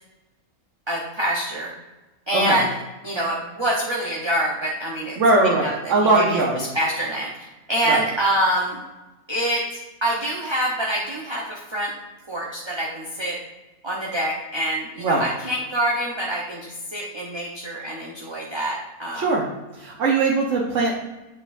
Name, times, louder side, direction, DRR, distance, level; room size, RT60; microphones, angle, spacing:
voice 1, 0.9-1.7 2.3-2.7 3.0-5.2 5.6-6.4 6.7-8.8 9.3-11.9 12.3-13.4 13.8-19.3, right 1 dB, 25° right, -4 dB, 0.7 m, -26 dB
voice 2, 5.2-6.6 7.9-8.0 15.0-15.2 19.1-19.5 19.7-20.9, right 3 dB, 60° right, -3 dB, 1.3 m, -20 dB
7.6 x 6.0 x 2.6 m, 1.1 s
omnidirectional pair, 1.5 m